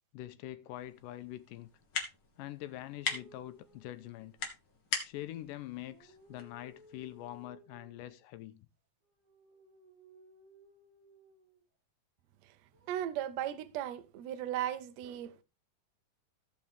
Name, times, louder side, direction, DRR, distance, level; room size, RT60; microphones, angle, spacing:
voice 1, 0.1-1.7 2.4-4.3 5.0-8.7, left 14 dB, 80° left, 2.1 m, -44 dB
sound 1, 0.7-7.5, left 5 dB, 45° left, 1.9 m, -42 dB
sound 2, 3.0-4.7 5.5-8.2 9.0-11.6 12.7-13.3, right 1 dB, 45° right, 5.2 m, -61 dB
voice 2, 12.9-15.4, right 11 dB, 80° right, 1.5 m, -36 dB
15.5 x 5.5 x 3.5 m
omnidirectional pair, 4.1 m